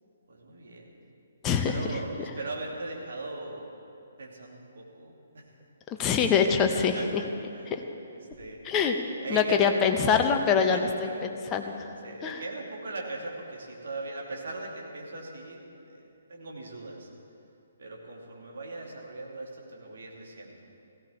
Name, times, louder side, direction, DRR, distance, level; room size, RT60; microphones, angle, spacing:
voice 1, 0.3-0.9 1.7-3.7 4.2-5.5 6.4-8.6 9.2-11.2 11.6-17.1 17.8-20.6, right 2 dB, 55° right, -1 dB, 2.8 m, -40 dB
voice 2, 1.4-2.0 6.0-7.0 7.7-7.8 8.6-9.0 9.3-11.7 12.2-12.4, left 6 dB, 20° left, 5 dB, 1.1 m, -24 dB
17.0 x 16.0 x 4.4 m, 2.7 s
figure-of-eight pair, 130°, 0 cm